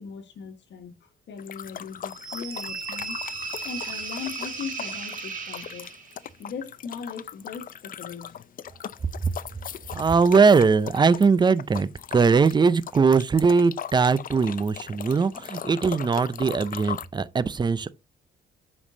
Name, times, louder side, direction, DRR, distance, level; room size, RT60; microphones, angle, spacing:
voice 1, 0.0-3.2 3.6-5.9 6.4-8.3, left 6 dB, 65° left, 1.4 m, -39 dB
sound 1, 1.4-17.1, left 9 dB, 45° left, 0.5 m, -39 dB
sound 2, 2.1-6.3, right 5 dB, 40° right, 1.9 m, -35 dB
voice 2, 9.9-17.9, right 5 dB, 20° right, 0.5 m, -20 dB
8.0 x 5.3 x 2.7 m
cardioid pair, 90°, 20 cm